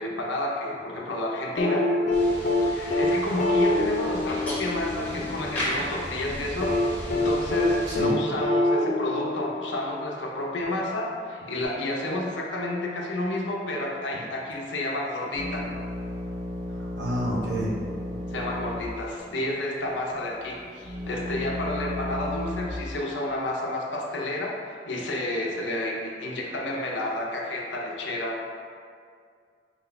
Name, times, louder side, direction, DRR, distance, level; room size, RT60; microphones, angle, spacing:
voice 1, 0.0-1.9 2.6-15.7 18.3-28.4, left 1 dB, 80° left, -1 dB, 0.7 m, -30 dB
sound 1, 1.6-5.7 6.6-10.2 11.6-11.7, left 2 dB, 40° left, 0.4 m, -25 dB
sound 2, 2.1-8.0, equal, 10° left, 0.9 m, -35 dB
sound 3, 15.3-18.9 19.2-19.3 19.9-22.7, left 1 dB, 20° right, 1.1 m, -34 dB
voice 2, 16.7-17.7, equal, 70° right, -7 dB, 1.1 m, -29 dB
4.8 x 2.2 x 3.9 m, 2.2 s
head